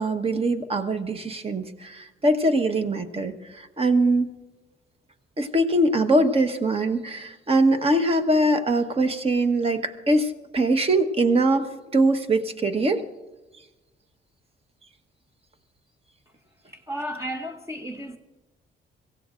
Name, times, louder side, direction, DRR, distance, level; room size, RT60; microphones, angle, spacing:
voice 1, 0.0-4.3 5.4-11.7 11.9-13.0, right 2 dB, 30° right, 1.2 m, -22 dB
voice 2, 16.7-18.2, equal, 15° right, 0.8 m, -33 dB
24.0 x 16.0 x 2.5 m
cardioid pair, 90°, 20 cm